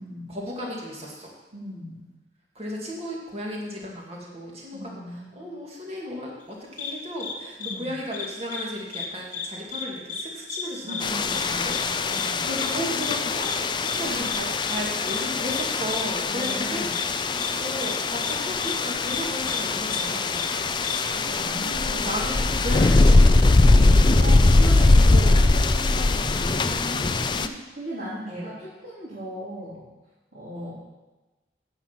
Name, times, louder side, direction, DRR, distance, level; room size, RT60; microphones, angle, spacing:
voice 1, 0.3-1.3 2.5-11.2 11.5-11.7 12.1-16.8 17.5-20.5 21.1-21.4 21.9-23.6 25.1-25.3 28.3-28.6 30.5-30.7, equal, 35° right, -2 dB, 2.4 m, -35 dB
voice 2, 1.5-2.0 4.7-5.3 7.6-7.9 10.8-11.8 12.1-12.4 13.8-14.3 16.2-16.9 21.2-22.1 23.7-29.9 30.3-30.7, equal, 55° right, -12 dB, 3.8 m, -37 dB
sound 1, 6.8-6.9 7.2-7.3 7.6-7.7 8.1-8.7 8.9-9.1 9.3-9.8 10.1-10.2 10.5-10.6 10.9-11.0 11.3-11.4 11.7-11.8 12.1-12.3 12.6-12.7 13.0-13.2 13.4-13.6 13.9-14.0 14.2-14.4 14.7-14.8 15.1-15.2 15.5-15.6 15.9-16.0 16.4-16.5 16.9-17.1 17.4-17.5 17.8-17.9 18.2-18.3 18.6-18.7 19.1-19.2 19.5-19.6 19.9-20.0 20.4-20.5 20.8-21.0, left 7 dB, 45° left, 1.1 m, -32 dB
sound 2, 11.0-27.5, left 2 dB, 25° left, 0.4 m, -21 dB
10.5 x 7.8 x 5.8 m, 1.1 s
head